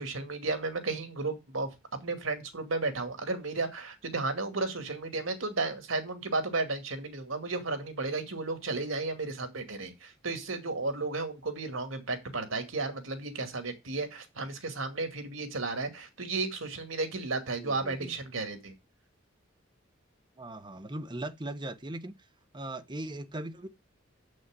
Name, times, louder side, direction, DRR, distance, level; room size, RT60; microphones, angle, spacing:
voice 1, 0.0-1.7 2.0-18.7, right 3 dB, 85° right, 2.3 m, -33 dB
voice 2, 17.6-18.2 20.4-22.1 22.5-23.7, right 1 dB, 25° right, 1.0 m, -39 dB
7.2 x 6.3 x 7.6 m
head